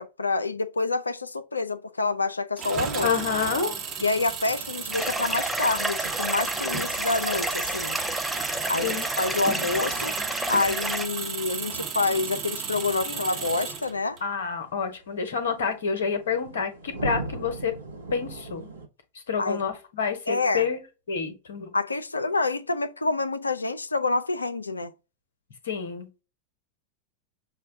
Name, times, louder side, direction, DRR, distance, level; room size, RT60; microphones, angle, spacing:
voice 1, 0.0-3.1 4.0-8.0 8.7-10.1 10.5-14.2 19.4-19.6 20.3-20.7 21.7-24.9, left 3 dB, 80° left, 0.4 m, -27 dB
Engine, 2.6-14.2, right 6 dB, 35° right, 0.9 m, -33 dB
voice 2, 3.0-3.7 8.8-9.1 13.0-13.2 14.2-17.7 18.1-18.7 19.3-20.8 21.1-21.7 25.6-26.1, left 6 dB, 65° left, 0.9 m, -28 dB
sound 1, 4.9-11.1, right 1 dB, ahead, 0.5 m, -30 dB
sound 2, 6.0-18.9, right 2 dB, 75° right, 1.0 m, -42 dB
6.3 x 2.2 x 2.6 m
figure-of-eight pair, 90°, 0 cm